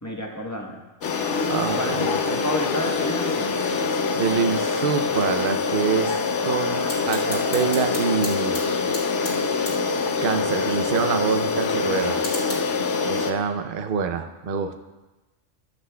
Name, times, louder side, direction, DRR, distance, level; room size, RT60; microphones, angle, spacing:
voice 1, 0.0-0.8 1.7-3.6, left 1 dB, 15° left, -1 dB, 1.0 m, -29 dB
sound 1, 1.0-13.3, left 4 dB, 65° left, 1.0 m, -25 dB
voice 2, 1.0-2.2 4.2-8.6 10.2-12.2 13.1-14.8, right 6 dB, 55° right, 7 dB, 0.7 m, -26 dB
sound 2, 4.9-12.5, left 1 dB, 85° left, 2.3 m, -39 dB
14.0 x 7.9 x 2.2 m, 1.1 s
omnidirectional pair, 1.4 m